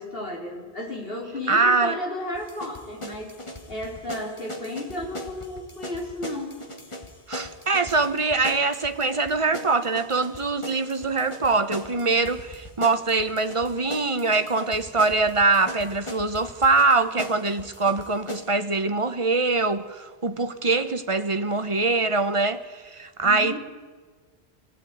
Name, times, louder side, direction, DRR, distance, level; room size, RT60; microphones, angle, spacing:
voice 1, 0.0-6.6 23.2-23.6, left 1 dB, 55° left, 4.8 m, -33 dB
voice 2, 1.5-2.0 7.3-23.6, right 3 dB, 30° right, 1.2 m, -23 dB
sound 1, 2.3-18.5, left 1 dB, 25° left, 2.4 m, -39 dB
24.5 x 16.5 x 9.4 m
omnidirectional pair, 1.1 m